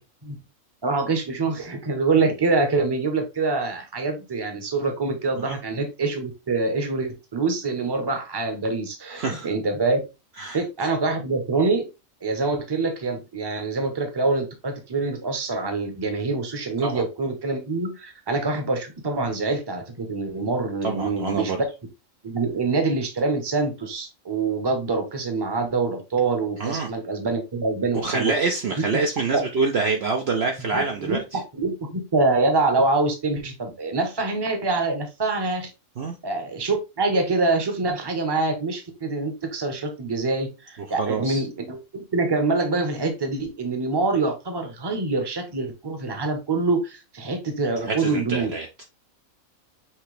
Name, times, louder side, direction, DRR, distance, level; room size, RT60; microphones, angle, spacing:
voice 1, 0.8-10.0 10.5-11.9 12.2-21.6 22.2-28.3 29.3-29.4 30.7-35.7 36.2-48.5, right 3 dB, 20° right, 0.8 m, -25 dB
voice 2, 9.2-9.5 10.4-10.6 16.8-17.0 20.8-21.6 26.6-26.9 27.9-31.2 36.0-36.2 41.0-41.4 47.8-48.7, right 4 dB, 60° right, 0.8 m, -26 dB
5.8 x 2.8 x 3.2 m
omnidirectional pair, 1.4 m